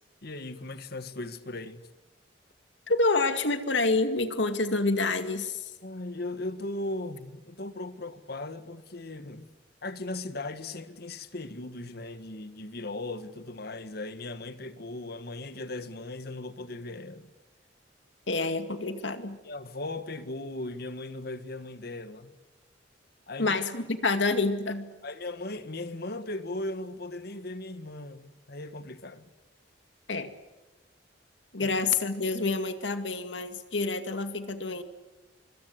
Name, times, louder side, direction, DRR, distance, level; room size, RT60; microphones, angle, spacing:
voice 1, 0.2-1.9 5.8-9.5 9.8-17.3 19.4-22.3 23.3-23.6 25.0-29.3 31.6-31.7, left 2 dB, 60° left, 1.7 m, -38 dB
voice 2, 2.9-5.7 18.3-19.4 23.4-24.9 30.1-30.3 31.5-34.8, left 3 dB, 80° left, 2.3 m, -28 dB
25.0 x 23.5 x 8.0 m
head